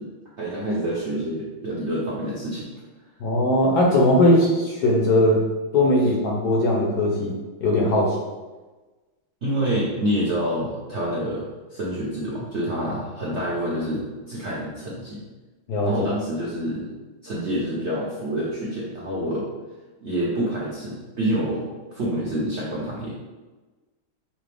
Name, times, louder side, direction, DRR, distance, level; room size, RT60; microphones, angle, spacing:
voice 1, 0.4-2.7 9.4-15.2 15.8-16.9 17.2-19.5 20.0-23.1, equal, 60° right, -7 dB, 0.7 m, -27 dB
voice 2, 3.2-5.4 5.7-7.3 7.6-8.2 15.7-15.9, left 1 dB, 65° left, -2 dB, 1.0 m, -19 dB
5.1 x 2.8 x 3.3 m, 1.2 s
omnidirectional pair, 2.2 m